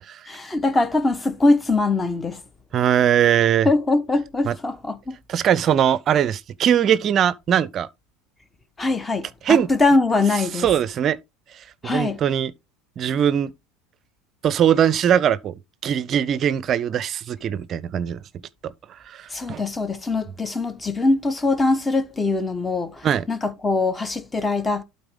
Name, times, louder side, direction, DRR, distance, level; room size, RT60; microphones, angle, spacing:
voice 1, 0.3-2.4 3.6-5.2 8.8-10.7 11.8-12.2 19.3-24.8, left 3 dB, 15° left, 1.1 m, -22 dB
voice 2, 2.7-3.7 4.5-4.6 5.3-7.9 9.4-9.7 10.5-11.2 11.8-12.5 13.0-13.5 14.4-18.2 18.6-18.7 19.1-19.6 23.0-23.3, right 9 dB, 40° right, 0.5 m, -20 dB
12.0 x 4.2 x 3.5 m
figure-of-eight pair, 75°, 0 cm